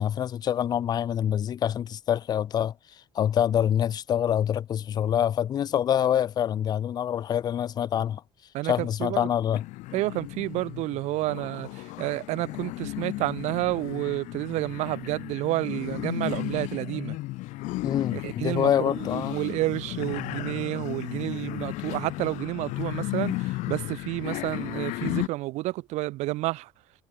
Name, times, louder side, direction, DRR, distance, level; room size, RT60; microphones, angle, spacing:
voice 1, 0.0-2.7 3.2-8.2 8.6-9.6 17.8-19.4, left 10 dB, 30° left, 0.5 m, -26 dB
voice 2, 8.5-9.3 9.9-17.2 18.1-26.7, right 19 dB, 65° right, 0.7 m, -30 dB
sound 1, 9.5-25.3, left 20 dB, 70° left, 2.7 m, -34 dB
cardioid pair, 145°, 13 cm